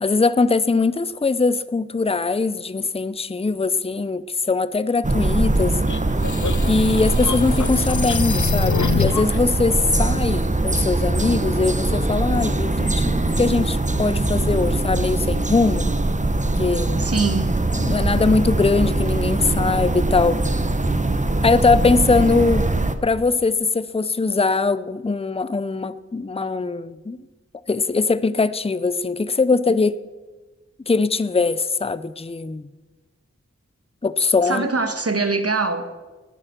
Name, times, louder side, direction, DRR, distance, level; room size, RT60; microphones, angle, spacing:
voice 1, 0.0-5.9 6.6-15.9 16.6-17.1 17.8-20.4 21.4-22.7 23.0-27.2 27.7-30.0 30.9-32.7 34.0-34.7, left 4 dB, 20° left, 0.5 m, -21 dB
sound 1, 5.0-22.9, right 2 dB, 25° right, 1.0 m, -22 dB
sound 2, 5.9-9.4, left 5 dB, 80° left, 0.8 m, -26 dB
voice 2, 16.9-17.6 34.4-35.9, right 3 dB, 55° right, 1.5 m, -23 dB
13.5 x 9.9 x 6.8 m
wide cardioid pair, 40°, 29 cm